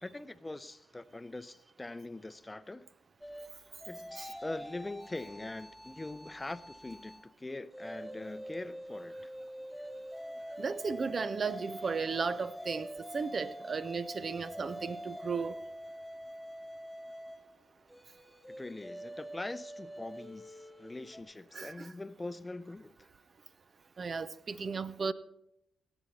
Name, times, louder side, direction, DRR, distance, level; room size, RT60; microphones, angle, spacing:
voice 1, 0.0-2.9 3.9-9.3 18.5-23.1, left 2 dB, 20° left, 0.6 m, -43 dB
sound 1, 3.2-7.3 7.7-21.2, equal, ahead, 1.9 m, -45 dB
voice 2, 10.6-15.6 21.5-21.9 24.0-25.1, right 5 dB, 50° right, 0.6 m, -35 dB
18.0 x 8.0 x 4.2 m
supercardioid pair, 55°, 0 cm